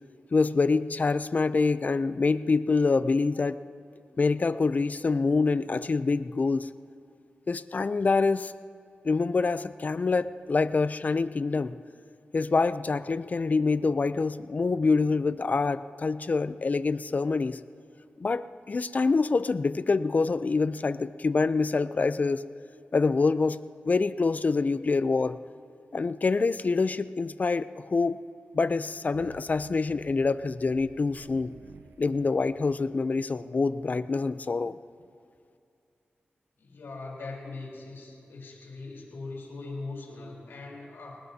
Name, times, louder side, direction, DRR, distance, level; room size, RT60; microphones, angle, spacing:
voice 1, 0.3-3.6 4.2-6.7 7.5-8.5 9.0-11.8 12.3-17.6 18.2-22.5 22.9-23.6 23.8-25.4 25.9-28.2 28.5-31.5 32.0-34.7, left 4 dB, 45° left, 13 dB, 0.5 m, -26 dB
sound 1, 29.1-33.3, right 5 dB, 90° right, 0.8 m, -52 dB
voice 2, 36.6-41.2, left 3 dB, 85° left, -2 dB, 4.0 m, -40 dB
24.0 x 19.5 x 2.8 m, 2.5 s
wide cardioid pair, 75°, 4 cm